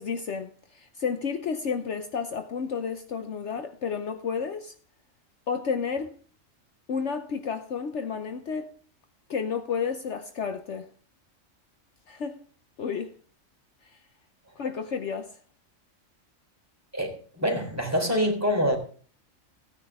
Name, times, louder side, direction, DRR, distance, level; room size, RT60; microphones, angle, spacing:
voice 1, 0.0-4.7 5.5-6.1 6.9-8.7 9.3-10.9 12.1-12.4 12.8-13.1 14.6-15.4, left 6 dB, 60° left, 1.1 m, -31 dB
voice 2, 16.9-18.8, equal, 10° right, 3.5 m, -25 dB
16.5 x 9.9 x 3.5 m
omnidirectional pair, 1.4 m